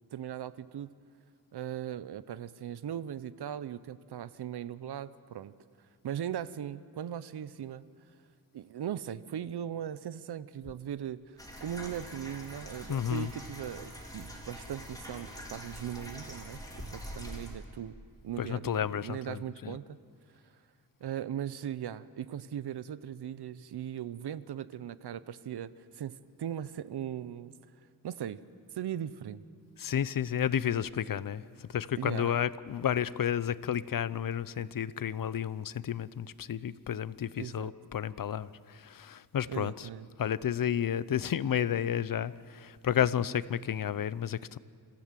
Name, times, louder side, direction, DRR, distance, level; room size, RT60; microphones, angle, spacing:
voice 1, 0.1-0.9 1.5-5.5 6.0-7.9 8.5-16.6 16.9-17.9 18.2-20.0 21.0-27.5 28.0-28.4 28.7-29.4 32.0-32.4 37.4-37.7 39.5-40.1, right 10 dB, 80° right, 16 dB, 0.7 m, -39 dB
sound 1, 11.4-17.5, equal, 10° left, 3.3 m, -44 dB
voice 2, 12.9-13.3 18.4-19.8 29.8-39.9 40.2-44.6, left 9 dB, 60° left, 17 dB, 0.6 m, -31 dB
26.5 x 16.0 x 7.5 m, 2.1 s
wide cardioid pair, 115°, 39 cm